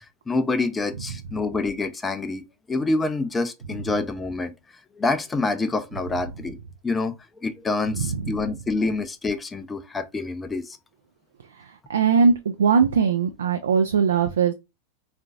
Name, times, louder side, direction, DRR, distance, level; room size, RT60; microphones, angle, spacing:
voice 1, 0.3-2.4 2.7-4.5 5.0-6.6 6.8-7.1 7.4-10.8, left 3 dB, 15° left, 0.4 m, -26 dB
voice 2, 7.9-8.3 11.6-14.5, right 6 dB, 65° right, 0.4 m, -21 dB
3.7 x 2.5 x 2.3 m
figure-of-eight pair, 90°, 0 cm